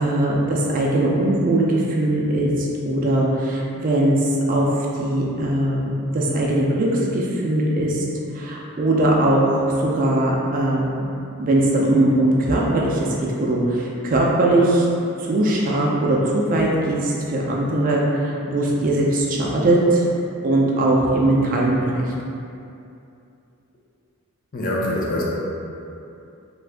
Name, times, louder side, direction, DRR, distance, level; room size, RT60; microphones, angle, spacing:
voice 1, 0.0-4.7 4.9-8.1 8.3-10.8 11.4-14.9 15.2-20.1 20.4-22.1, right 1 dB, 40° right, -3 dB, 0.4 m, -20 dB
voice 2, 24.5-25.2, left 1 dB, 40° left, -4 dB, 0.4 m, -24 dB
2.7 x 2.5 x 3.3 m, 2.7 s
head